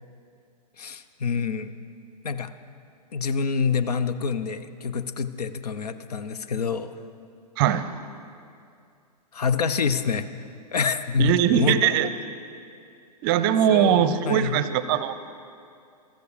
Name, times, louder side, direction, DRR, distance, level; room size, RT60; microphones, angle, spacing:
voice 1, 0.8-1.7 2.2-2.5 3.1-6.9 9.3-10.3 10.7-12.0 13.7-14.6, left 5 dB, 70° left, 12 dB, 0.7 m, -27 dB
voice 2, 7.6-7.9 11.2-12.1 13.2-15.1, right 9 dB, 35° right, 13 dB, 0.6 m, -21 dB
14.5 x 13.5 x 5.0 m, 2.4 s
figure-of-eight pair, 115°, 21 cm